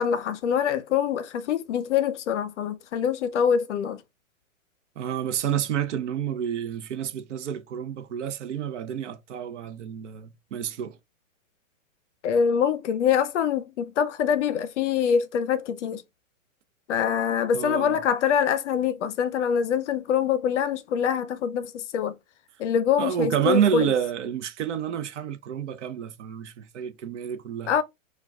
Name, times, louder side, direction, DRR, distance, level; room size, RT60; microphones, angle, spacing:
voice 1, 0.0-4.0 12.2-16.0 16.9-22.1 22.6-23.9 27.7-27.8, left 8 dB, 60° left, 0.6 m, -24 dB
voice 2, 5.0-11.0 17.5-18.0 23.0-27.7, right 9 dB, 60° right, 0.6 m, -29 dB
4.6 x 2.3 x 2.3 m
hypercardioid pair, 155°, 40 cm